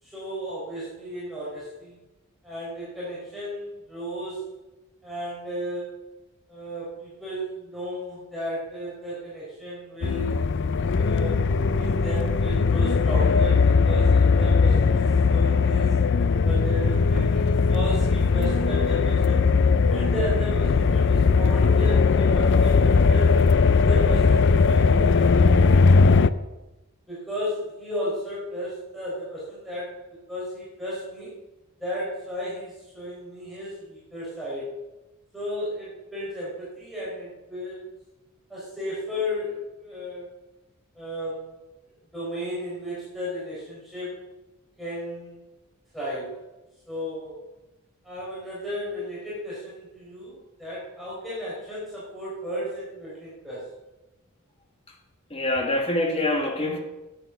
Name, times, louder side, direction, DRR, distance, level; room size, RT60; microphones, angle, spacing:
voice 1, 0.0-2.0 2.4-4.5 5.0-6.0 6.5-10.6 10.9-11.5 11.7-15.9 16.4-19.4 19.9-23.3 23.8-26.3 27.1-30.0 30.3-31.3 31.8-34.7 35.3-37.8 38.5-40.3 40.9-41.5 42.1-44.2 44.8-45.4 45.9-46.4 46.9-47.4 48.0-53.7, equal, ahead, -8 dB, 4.2 m, -34 dB
sound 1, 10.0-26.3, left 4 dB, 55° left, 0.5 m, -19 dB
voice 2, 55.3-56.8, left 1 dB, 25° left, 3 dB, 1.8 m, -25 dB
12.0 x 9.0 x 5.9 m, 1.0 s
head